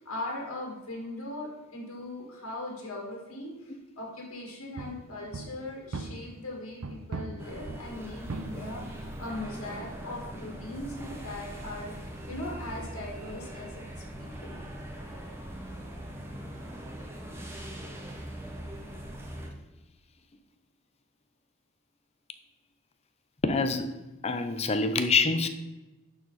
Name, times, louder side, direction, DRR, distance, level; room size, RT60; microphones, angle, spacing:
voice 1, 0.0-11.9 12.3-13.8 14.2-14.6, left 1 dB, 80° left, -1 dB, 2.3 m, -39 dB
sound 1, 4.8-6.5 6.8-12.6, right 3 dB, 80° right, 0.6 m, -42 dB
sound 2, 7.4-19.5, right 1 dB, 10° right, 1.1 m, -41 dB
voice 2, 23.4-25.5, left 4 dB, 30° left, 9 dB, 0.5 m, -26 dB
11.0 x 4.6 x 4.1 m, 1.1 s
head